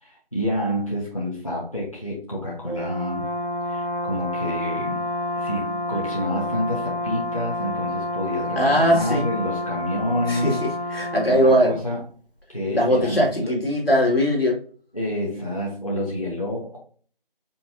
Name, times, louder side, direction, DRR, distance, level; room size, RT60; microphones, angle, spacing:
voice 1, 0.0-3.2 3.7-5.0 5.3-10.6 11.3-12.0 12.5-13.5 14.9-16.8, left 1 dB, 35° left, 1.0 m, -28 dB
Brass instrument, 2.6-11.4, left 1 dB, 65° left, 1.0 m, -29 dB
voice 2, 8.6-9.3 10.3-11.8 12.7-14.6, equal, 80° left, 2.0 m, -20 dB
5.4 x 2.6 x 2.5 m
figure-of-eight pair, 175°, 29 cm